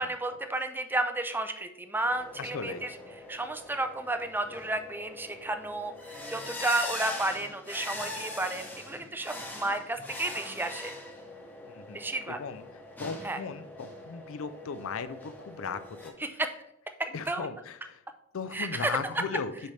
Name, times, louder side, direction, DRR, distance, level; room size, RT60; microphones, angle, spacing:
voice 1, 0.0-2.9 3.3-10.9 11.9-12.4 13.2-13.4 16.2-16.5 17.0-17.5 18.5-18.9, right 2 dB, 10° right, 8 dB, 0.5 m, -32 dB
sound 1, 2.0-16.1, left 2 dB, 10° left, 0.9 m, -42 dB
voice 2, 2.4-2.8 11.7-12.6 13.0-16.1 17.1-18.0 18.3-19.5, left 5 dB, 70° left, 13 dB, 0.4 m, -37 dB
6.7 x 5.0 x 3.2 m, 0.81 s
head